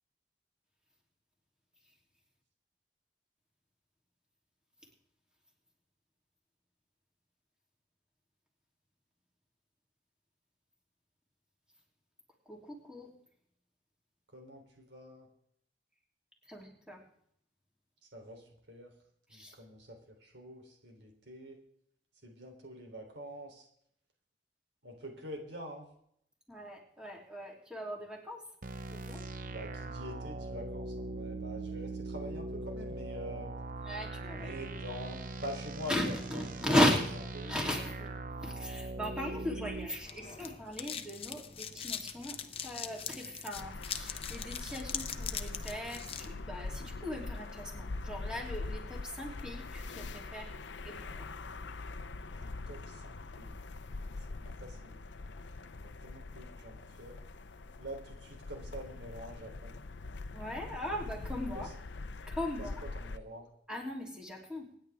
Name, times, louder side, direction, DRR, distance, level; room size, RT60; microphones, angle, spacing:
voice 1, 12.4-13.1 16.5-17.0 19.3-19.5 26.5-28.4 28.9-29.3 33.8-34.5 35.9-37.1 37.5-50.5 50.8-51.3 60.3-61.7 62.3-62.7 63.7-64.7, left 1 dB, 5° right, -1 dB, 3.1 m, -37 dB
voice 2, 14.3-15.3 18.0-18.9 19.3-21.6 22.2-23.7 24.8-25.9 29.5-33.6 34.3-36.6 36.9-37.0 37.3-37.5 52.3-53.7 54.1-55.0 55.8-57.2 57.8-59.8 61.5-61.7 62.6-63.5 64.7-64.8, equal, 75° right, 2 dB, 3.4 m, -46 dB
sound 1, 28.6-39.9, right 2 dB, 50° right, 0.9 m, -41 dB
sound 2, 39.7-46.3, left 8 dB, 35° left, 0.9 m, -42 dB
sound 3, 43.5-63.2, left 3 dB, 80° left, 0.7 m, -43 dB
25.5 x 10.5 x 3.6 m, 0.69 s
head